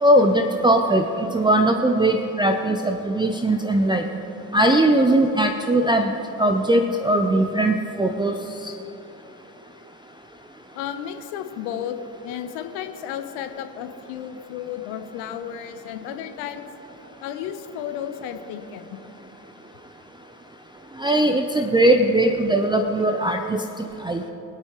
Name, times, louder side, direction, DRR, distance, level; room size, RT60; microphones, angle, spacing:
voice 1, 0.0-4.0 4.5-6.1 6.4-8.4 21.0-23.6 24.0-24.2, right 1 dB, 10° right, 5 dB, 0.7 m, -19 dB
voice 2, 10.7-12.0 12.2-16.7 17.2-19.0, left 9 dB, 65° left, 8 dB, 1.1 m, -33 dB
23.5 x 8.6 x 3.1 m, 2.9 s
figure-of-eight pair, 50°, 50 cm